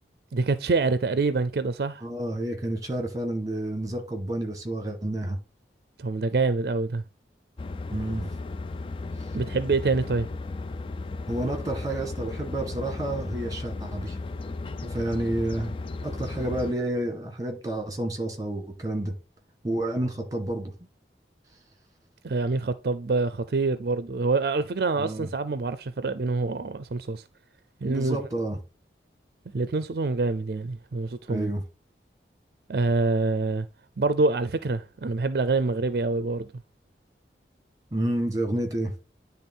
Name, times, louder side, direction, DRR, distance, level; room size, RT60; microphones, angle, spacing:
voice 1, 0.3-2.0 6.0-7.0 9.3-10.3 22.2-27.2 27.8-28.2 29.5-31.5 32.7-33.7 34.0-36.5, right 3 dB, 60° right, 0.4 m, -26 dB
voice 2, 2.0-5.4 7.9-8.3 11.3-14.2 14.8-15.7 16.0-19.1 19.6-20.7 25.0-25.3 27.9-28.6 31.3-31.6 37.9-38.9, right 1 dB, 20° right, 1.8 m, -30 dB
sound 1, 7.6-16.7, left 3 dB, 30° left, 0.3 m, -35 dB
9.9 x 3.5 x 4.3 m
head